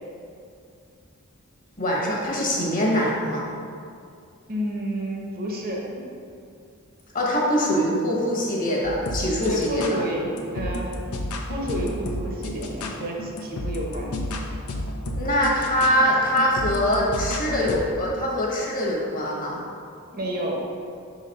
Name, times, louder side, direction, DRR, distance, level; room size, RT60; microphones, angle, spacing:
voice 1, 1.8-3.4 7.1-10.0 15.1-19.6, equal, 40° left, -3 dB, 1.1 m, -23 dB
voice 2, 4.5-6.1 9.4-11.0 11.5-14.2 20.1-20.6, right 1 dB, 45° right, -1 dB, 0.9 m, -30 dB
sound 1, 8.8-17.8, left 1 dB, 85° left, 0.6 m, -32 dB
4.9 x 4.1 x 5.2 m, 2.4 s
head